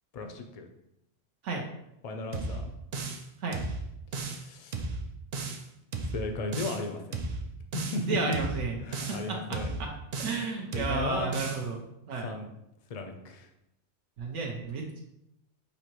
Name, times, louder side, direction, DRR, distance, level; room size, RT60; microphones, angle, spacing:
voice 1, 0.1-0.7 2.0-2.7 4.1-4.8 6.1-7.3 7.7-8.4 8.8-9.8 10.7-11.3 12.1-12.5 12.9-13.5, left 2 dB, 65° left, 5 dB, 0.3 m, -35 dB
sound 1, 2.3-3.3 3.5-4.4 4.7-5.6 5.9-6.8 7.1-8.0 8.3-9.2 9.5-10.5 10.7-11.6, right 3 dB, 65° right, 0.4 m, -35 dB
voice 2, 8.0-8.7 9.1-9.9 10.2-12.3 14.2-15.0, right 4 dB, 85° right, 0 dB, 1.0 m, -33 dB
6.2 x 2.8 x 2.9 m, 0.83 s
omnidirectional pair, 1.2 m